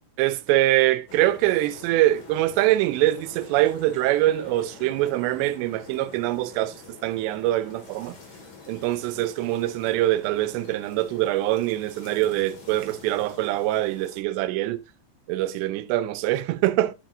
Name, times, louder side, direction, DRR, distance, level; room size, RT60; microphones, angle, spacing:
voice 1, 0.2-6.7 7.0-8.2 8.7-14.8 15.3-16.9, right 15 dB, 85° right, 2.8 m, -24 dB
sound 1, 1.1-14.2, left 4 dB, 40° left, 2.2 m, -46 dB
9.5 x 7.3 x 2.5 m
omnidirectional pair, 4.9 m